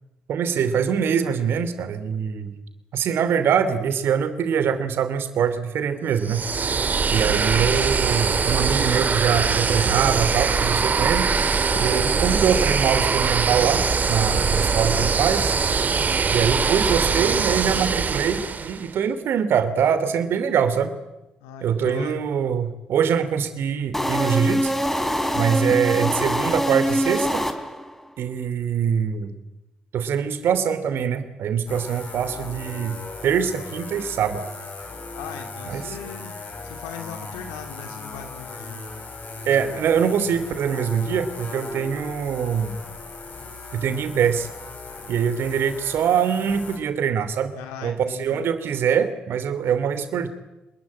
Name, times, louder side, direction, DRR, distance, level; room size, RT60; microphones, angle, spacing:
voice 1, 0.3-2.5 2.9-6.4 7.1-11.3 11.8-15.6 16.3-20.9 21.6-24.7 25.3-27.4 28.2-29.3 29.9-33.0 33.2-34.4 35.6-35.9 39.4-42.8 43.7-44.5 45.1-47.5 47.8-47.9 48.2-50.3, right 7 dB, 65° right, 11 dB, 3.0 m, -23 dB
sound 1, 6.2-18.9, right 5 dB, 45° right, 2.2 m, -22 dB
voice 2, 7.1-7.6 11.7-12.1 21.4-22.2 35.2-36.4 36.6-38.8 47.5-48.5, left 7 dB, 80° left, 6 dB, 2.5 m, -39 dB
sound 2, 23.9-28.0, equal, 5° left, 3.3 m, -24 dB
sound 3, 31.7-46.8, left 3 dB, 45° left, 7.3 m, -38 dB
26.5 x 20.5 x 9.0 m, 0.99 s
hypercardioid pair, 45°, 4 cm